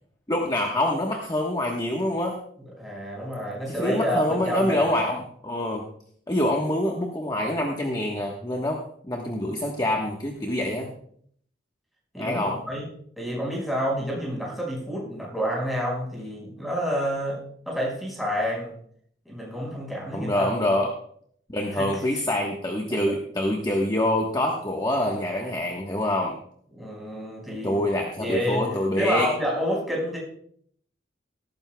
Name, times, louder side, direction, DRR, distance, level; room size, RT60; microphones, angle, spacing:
voice 1, 0.3-2.4 3.8-5.8 6.3-8.8 9.1-10.9 12.2-12.6 20.1-20.9 21.5-26.3 27.6-29.3, left 1 dB, 20° left, 0 dB, 1.2 m, -25 dB
voice 2, 2.6-5.0 12.1-12.8 13.2-17.4 17.7-18.7 19.3-20.8 21.7-22.0 23.1-23.2 26.7-27.8 28.2-28.7 29.0-30.2, equal, ahead, -4 dB, 5.4 m, -29 dB
17.5 x 14.5 x 2.3 m, 0.63 s
head